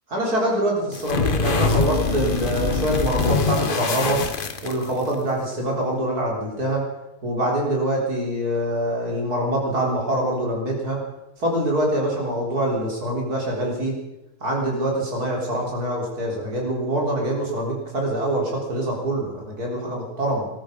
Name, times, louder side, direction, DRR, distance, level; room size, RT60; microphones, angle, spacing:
voice 1, 0.1-4.2 4.6-6.9 7.2-11.0 11.4-14.0 14.4-20.5, right 1 dB, 75° right, -2 dB, 4.5 m, -24 dB
sound 1, 0.9-5.1, left 4 dB, 40° left, 1.0 m, -23 dB
20.0 x 12.5 x 5.3 m, 0.92 s
omnidirectional pair, 1.6 m